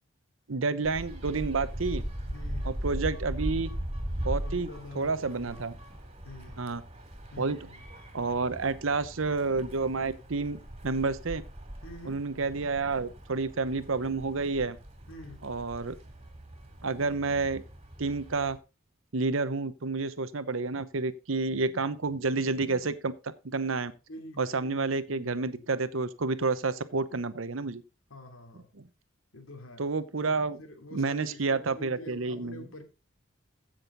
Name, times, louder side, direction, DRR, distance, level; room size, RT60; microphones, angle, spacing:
voice 1, 0.5-2.0 2.6-3.7 4.2-4.7 4.9-5.7 6.6-6.8 7.4-7.6 8.1-11.4 12.1-14.8 15.4-15.9 16.8-17.6 18.0-18.6 19.1-23.9 24.4-27.8 29.8-30.6 30.9-32.7, right 3 dB, 80° right, 0.9 m, -30 dB
sound 1, 0.8-18.6, equal, 30° right, 2.8 m, -39 dB
voice 2, 2.2-2.7 4.4-5.7 6.2-6.6 7.3-7.9 11.8-12.2 15.1-15.4 24.1-25.6 28.1-28.7 29.3-29.8 30.2-32.8, left 1 dB, 85° left, 2.9 m, -47 dB
15.0 x 6.4 x 3.9 m
head